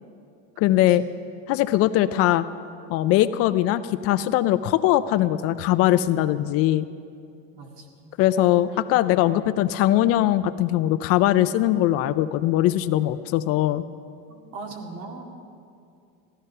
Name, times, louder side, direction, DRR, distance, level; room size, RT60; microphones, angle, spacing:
voice 1, 0.6-1.0 1.5-2.4 2.9-6.9 8.2-13.8, left 14 dB, 50° left, 13 dB, 0.4 m, -21 dB
voice 2, 7.5-8.1 8.7-8.8 14.3-15.2, right 3 dB, 75° right, 2 dB, 2.1 m, -39 dB
15.5 x 12.0 x 5.6 m, 2.4 s
cardioid pair, 160°, 32 cm